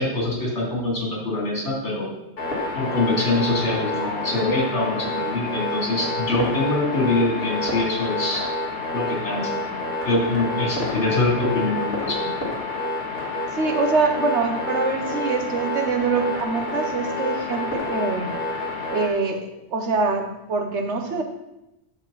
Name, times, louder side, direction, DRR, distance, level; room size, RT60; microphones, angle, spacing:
voice 1, 0.0-2.1 2.7-8.4 8.9-9.8 10.0-12.1, left 2 dB, 70° left, -3 dB, 3.2 m, -24 dB
sound 1, 2.4-19.1, left 2 dB, 55° left, 2.5 m, -28 dB
voice 2, 13.5-18.3 18.9-21.2, right 4 dB, 75° right, 5 dB, 1.3 m, -24 dB
10.0 x 7.0 x 4.0 m, 0.91 s
omnidirectional pair, 1.2 m